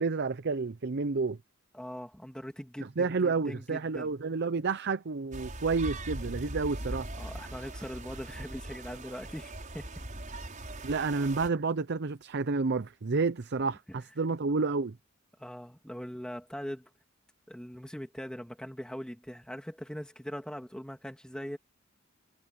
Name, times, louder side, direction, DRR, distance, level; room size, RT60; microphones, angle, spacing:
voice 1, 0.0-1.4 3.0-7.1 10.8-14.9, right 4 dB, 55° right, 0.7 m, -30 dB
voice 2, 1.7-4.1 7.2-9.9 11.0-11.2 13.9-14.0 15.4-16.9 17.5-21.6, equal, 5° left, 2.9 m, -41 dB
sound 1, 5.3-11.5, right 1 dB, 40° right, 6.2 m, -40 dB
head